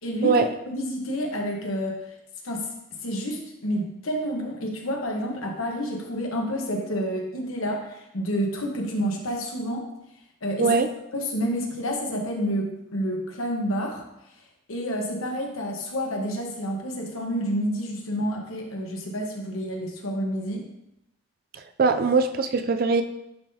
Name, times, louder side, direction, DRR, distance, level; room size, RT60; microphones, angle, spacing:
voice 1, 0.0-2.1 2.4-2.7 3.0-9.9 10.4-10.8 11.1-14.0 14.7-20.6, equal, 85° left, 1 dB, 1.2 m, -29 dB
voice 2, 21.8-23.0, right 4 dB, 45° right, 8 dB, 0.4 m, -21 dB
10.0 x 3.8 x 2.8 m, 0.87 s
head